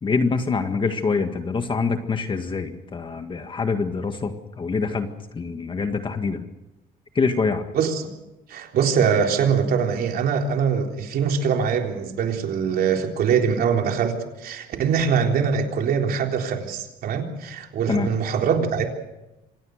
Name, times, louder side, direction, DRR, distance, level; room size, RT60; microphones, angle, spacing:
voice 1, 0.0-5.1 5.3-6.4 7.2-7.7 17.9-18.1, left 4 dB, 30° left, 7 dB, 1.8 m, -25 dB
voice 2, 7.7-8.1 8.5-18.9, right 6 dB, 65° right, 3 dB, 3.8 m, -23 dB
26.5 x 18.0 x 6.5 m, 0.95 s
cardioid pair, 110°, 17 cm